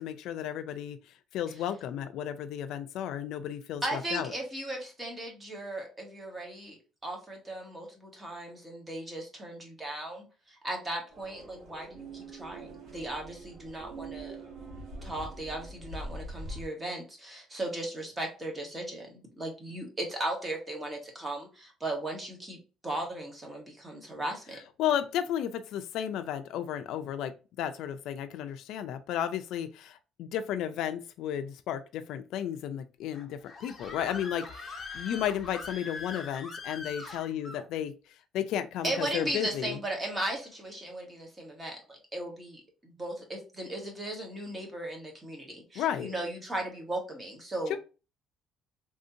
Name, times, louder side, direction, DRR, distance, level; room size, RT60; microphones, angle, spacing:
voice 1, 0.0-4.3 24.8-39.8 45.8-46.1 47.7-47.8, left 10 dB, 75° left, 0.3 m, -33 dB
voice 2, 3.8-14.4 15.0-19.1 19.3-24.6 37.0-37.2 38.8-47.8, right 1 dB, 20° right, 1.2 m, -37 dB
sound 1, 11.1-16.7, right 2 dB, 70° right, 1.6 m, -43 dB
Screaming, 33.1-37.7, left 4 dB, 30° left, 0.8 m, -42 dB
3.4 x 2.7 x 2.5 m
cardioid pair, 130°, 0 cm